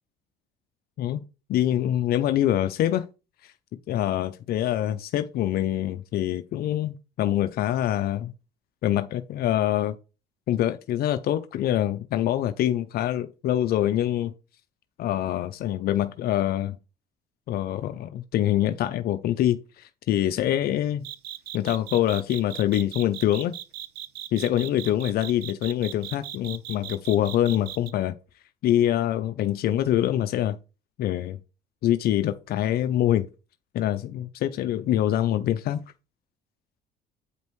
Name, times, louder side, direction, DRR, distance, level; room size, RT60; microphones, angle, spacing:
voice 1, 1.5-3.0 3.4-3.5 3.9-8.3 8.8-9.9 10.5-14.3 15.0-16.8 17.5-21.0 21.5-23.5 24.3-28.2 28.6-30.6 31.0-31.4 31.8-33.3 33.7-35.8, left 12 dB, 65° left, 0.5 m, -25 dB
sound 1, 21.0-27.9, right 13 dB, 80° right, 0.7 m, -37 dB
8.3 x 5.3 x 3.1 m
cardioid pair, 110°, 17 cm